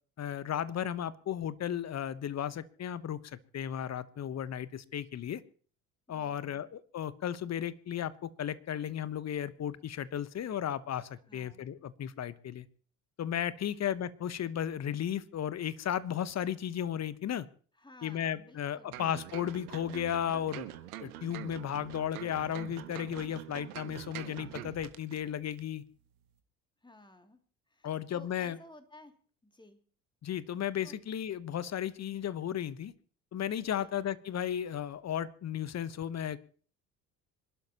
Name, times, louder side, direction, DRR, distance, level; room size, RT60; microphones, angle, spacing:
voice 1, 0.2-5.4 6.1-12.6 13.2-17.5 18.0-20.7 21.0-25.8 27.8-28.6 30.2-32.9 33.3-36.4, left 10 dB, 35° left, 16 dB, 1.1 m, -35 dB
voice 2, 6.1-6.7 11.3-11.7 13.7-13.8 17.8-19.0 26.8-27.4 27.7-29.2 29.4-29.8 30.8-30.9 33.7-33.9, left 2 dB, 10° left, 6 dB, 2.7 m, -55 dB
sound 1, 18.9-25.2 25.5-25.6, right 13 dB, 75° right, 1.4 m, -44 dB
26.0 x 12.0 x 3.0 m, 0.43 s
figure-of-eight pair, 60°, 45 cm